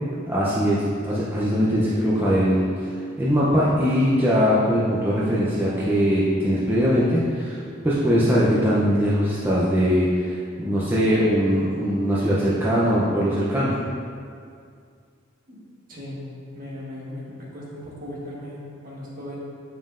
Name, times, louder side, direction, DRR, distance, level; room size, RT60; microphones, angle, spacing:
voice 1, 0.3-7.6 7.8-13.7, equal, 10° right, -8 dB, 0.5 m, -21 dB
voice 2, 15.9-16.2 16.5-19.4, left 1 dB, 45° right, -5 dB, 1.3 m, -37 dB
7.3 x 5.3 x 2.5 m, 2.3 s
head